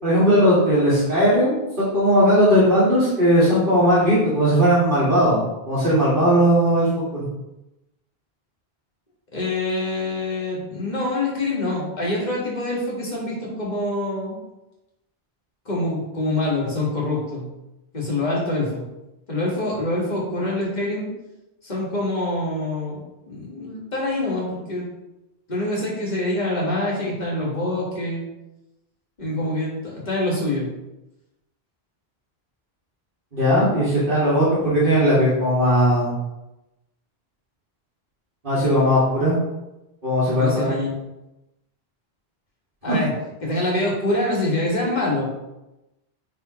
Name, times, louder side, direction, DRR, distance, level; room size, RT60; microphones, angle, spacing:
voice 1, 0.0-5.4 5.7-7.2 33.3-36.1 38.4-39.4 40.0-40.7 42.9-43.0, equal, 55° right, -11 dB, 2.4 m, -18 dB
voice 2, 9.3-14.4 15.7-17.5 17.9-18.8 19.3-21.1 21.6-24.9 25.5-28.2 29.2-30.7 40.3-41.0 42.8-43.1 43.4-45.3, left 2 dB, 45° left, -5 dB, 2.0 m, -25 dB
10.0 x 3.8 x 3.1 m, 0.96 s
omnidirectional pair, 1.0 m